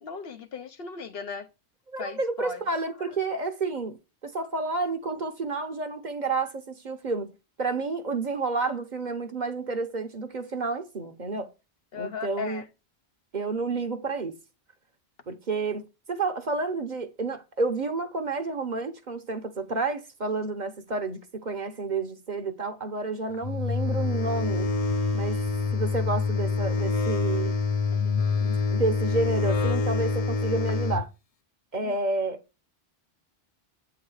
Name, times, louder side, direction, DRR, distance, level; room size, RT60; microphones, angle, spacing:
voice 1, 0.0-1.5 2.0-2.6 3.0-3.2 11.9-12.7 27.9-28.4 31.8-32.0, left 5 dB, 65° left, 1.0 m, -38 dB
voice 2, 1.9-4.0 4.2-7.3 7.6-11.5 11.9-12.6 13.3-14.3 15.3-24.7 25.1-25.4 25.7-27.6 28.4-31.1 31.7-32.4, right 3 dB, 45° right, 1.0 m, -30 dB
sound 1, 23.4-31.0, left 4 dB, 40° left, 0.6 m, -26 dB
8.4 x 3.9 x 4.7 m
omnidirectional pair, 1.1 m